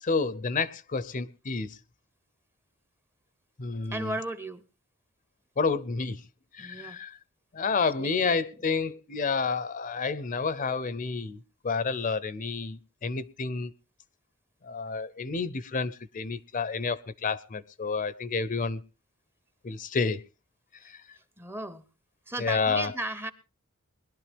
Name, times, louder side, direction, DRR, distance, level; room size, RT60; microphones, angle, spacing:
voice 1, 0.0-1.7 3.6-4.2 5.6-6.2 6.5-7.1 7.5-11.4 11.6-13.7 14.6-18.8 19.6-20.2 20.8-21.0 22.4-22.9, left 4 dB, 40° left, 0.6 m, -30 dB
voice 2, 3.9-4.6 6.6-7.0 8.0-8.6 21.4-21.8 22.3-23.3, right 1 dB, 10° right, 0.7 m, -36 dB
21.0 x 12.0 x 3.5 m
head